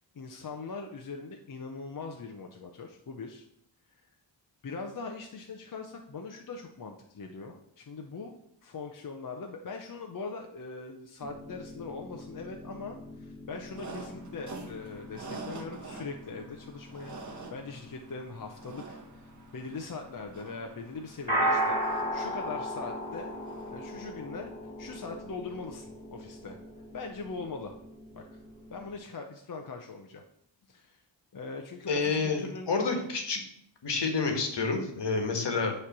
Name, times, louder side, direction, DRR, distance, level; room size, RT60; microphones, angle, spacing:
voice 1, 0.1-3.4 4.0-4.1 4.6-8.3 8.6-19.2 19.5-21.8 22.1-23.3 23.7-24.5 24.8-26.6 26.9-27.7 28.1-28.4 28.7-30.2 30.7-31.0 31.3-32.9 34.2-34.4 35.1-35.4, left 4 dB, 45° left, 3 dB, 0.7 m, -41 dB
sound 1, 11.2-29.0, right 1 dB, 10° left, 2.2 m, -38 dB
sound 2, 13.7-24.0, right 3 dB, 40° right, 1.2 m, -47 dB
voice 2, 31.9-33.4 33.8-35.7, left 4 dB, 65° left, 4 dB, 1.5 m, -29 dB
8.6 x 3.3 x 5.9 m, 0.73 s
wide cardioid pair, 125°, 45 cm